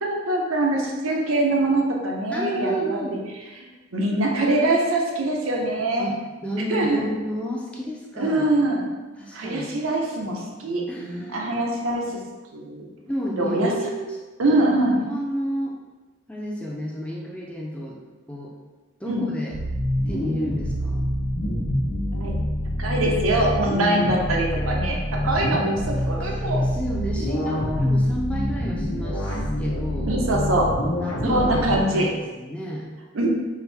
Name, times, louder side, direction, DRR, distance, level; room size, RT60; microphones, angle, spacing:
voice 1, 0.0-3.0 3.9-6.1 6.7-7.0 8.2-8.8 9.3-12.2 12.5-12.9 13.4-13.7 14.4-15.0 19.1-19.2 22.1-22.3 22.8-26.6 30.1-30.7 31.2-32.1 33.1-33.3, right 1 dB, 85° right, -1 dB, 0.7 m, -23 dB
voice 2, 2.3-3.2 6.0-6.1 6.4-8.5 9.2-9.7 10.9-11.4 13.1-14.2 14.9-15.8 16.3-18.0 18.3-18.5 19.0-19.5 20.1-21.1 26.0-30.1 31.0-32.9, equal, 5° left, -3 dB, 0.4 m, -31 dB
sound 1, 19.5-31.8, equal, 90° left, 0.9 m, -26 dB
4.7 x 2.6 x 3.3 m, 1.3 s
head